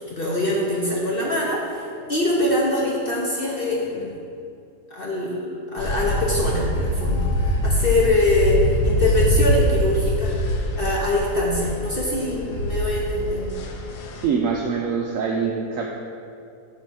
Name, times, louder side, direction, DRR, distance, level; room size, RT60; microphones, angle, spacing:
voice 1, 0.1-4.2 4.9-13.5, left 1 dB, 50° left, -3 dB, 0.7 m, -23 dB
sound 1, 5.8-14.3, equal, 85° left, 1.3 m, -24 dB
voice 2, 14.2-15.9, right 5 dB, 70° right, 0 dB, 0.8 m, -24 dB
8.2 x 3.1 x 6.1 m, 2.6 s
omnidirectional pair, 1.7 m